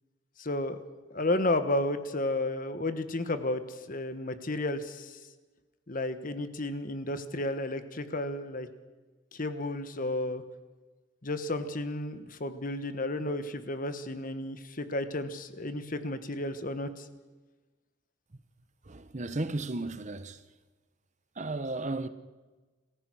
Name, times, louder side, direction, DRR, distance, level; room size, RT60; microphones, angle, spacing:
voice 1, 0.4-0.8 1.1-5.2 5.9-8.7 9.3-10.4 11.2-17.0, left 1 dB, 45° left, 1.3 m, -32 dB
voice 2, 18.8-20.5 21.3-22.1, right 2 dB, 35° right, 0.9 m, -34 dB
27.5 x 15.0 x 6.2 m
head